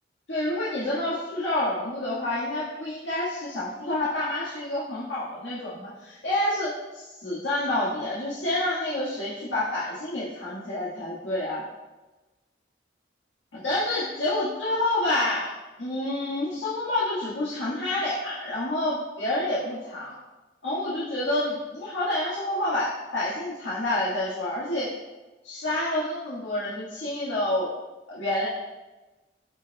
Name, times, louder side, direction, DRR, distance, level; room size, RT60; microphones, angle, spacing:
voice 1, 0.3-11.6 13.5-15.5 15.8-20.1 20.6-24.9 25.4-27.7 28.1-28.5, left 1 dB, 85° left, -9 dB, 1.9 m, -28 dB
15.0 x 5.4 x 2.3 m, 1.2 s
head